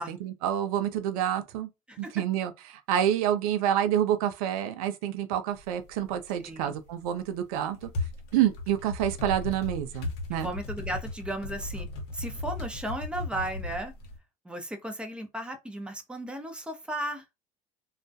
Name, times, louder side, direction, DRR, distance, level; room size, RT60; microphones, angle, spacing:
voice 1, 0.0-1.7 2.0-7.9 8.3-10.5, right 10 dB, 80° right, 0.4 m, -28 dB
sound 1, 5.5-5.6 5.9-6.4 6.9-14.2, left 2 dB, 65° left, 0.8 m, -36 dB
voice 2, 6.4-6.7 10.3-11.9 12.1-13.9 14.4-17.2, right 1 dB, 5° right, 0.6 m, -35 dB
2.3 x 2.1 x 2.6 m
hypercardioid pair, 80°, 18 cm